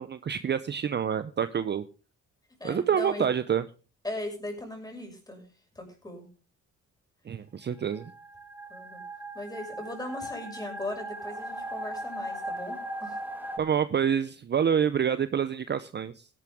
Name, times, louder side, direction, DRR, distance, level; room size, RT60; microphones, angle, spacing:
voice 1, 0.0-1.8 2.6-3.6 7.3-8.1 13.6-16.3, right 8 dB, 35° right, 13 dB, 0.6 m, -27 dB
voice 2, 2.6-3.3 4.0-5.4 5.7-6.3 8.7-9.0 9.3-13.2, left 1 dB, 10° left, 2 dB, 6.5 m, -38 dB
sound 1, 7.8-13.6, right 1 dB, 5° right, 1.7 m, -38 dB
16.5 x 11.0 x 3.6 m, 0.35 s
cardioid pair, 90°, 30 cm